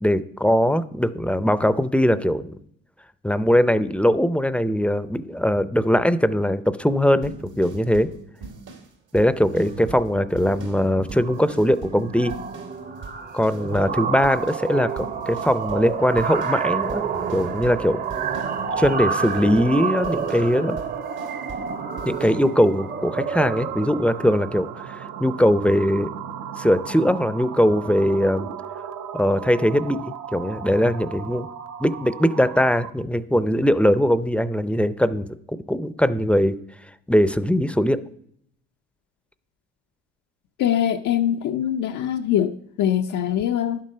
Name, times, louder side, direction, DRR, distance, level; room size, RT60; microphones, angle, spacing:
voice 1, 0.0-2.6 3.2-8.1 9.1-12.3 13.3-17.0 17.3-18.0 18.8-20.8 22.1-26.1 26.6-28.5 29.1-31.5 31.8-36.6 37.1-38.0, equal, 5° left, 0.5 m, -21 dB
sound 1, 7.2-12.8 13.0-14.0 14.2-21.7 22.0-22.4, right 3 dB, 85° right, 2.8 m, -40 dB
sound 2, 10.1-10.2 10.5-10.8 11.1-26.0, right 6 dB, 30° right, 0.7 m, -30 dB
sound 3, 13.6-33.0, right 9 dB, 65° right, 0.8 m, -36 dB
voice 2, 40.6-43.8, left 10 dB, 80° left, 0.6 m, -23 dB
11.0 x 7.5 x 5.5 m
cardioid pair, 90°, 30 cm